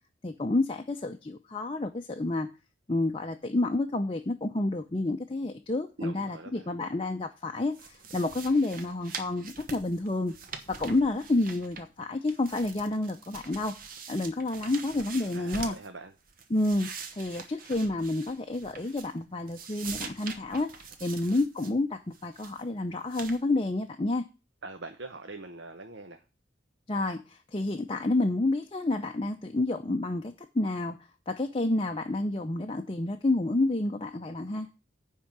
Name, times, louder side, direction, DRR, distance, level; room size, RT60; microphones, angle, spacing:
voice 1, 0.2-2.5 2.9-10.3 10.7-13.8 14.1-15.8 16.5-16.9 17.2-24.2 26.9-31.0 31.3-34.7, left 2 dB, 25° left, 4 dB, 0.6 m, -29 dB
voice 2, 6.0-6.7 15.3-16.1 24.6-26.2, right 3 dB, 70° right, 6 dB, 0.9 m, -43 dB
sound 1, 7.7-12.0 12.3-15.9 16.3-19.2 19.5-21.7 22.1-22.6 23.1-23.4, right 5 dB, 45° right, 1.1 m, -44 dB
10.0 x 3.7 x 7.3 m, 0.31 s
head